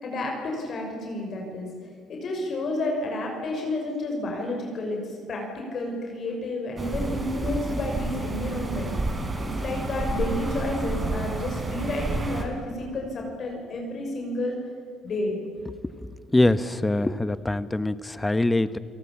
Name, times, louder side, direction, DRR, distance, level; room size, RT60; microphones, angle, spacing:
voice 1, 0.0-1.7 2.1-5.0 5.3-14.6 15.0-15.4, left 2 dB, 55° left, 1 dB, 6.1 m, -31 dB
sound 1, 6.8-12.4, right 2 dB, 25° right, 4.3 m, -30 dB
voice 2, 16.3-18.8, left 2 dB, 15° left, 14 dB, 1.1 m, -23 dB
28.5 x 18.5 x 8.7 m, 2.1 s
supercardioid pair, 80°, 0 cm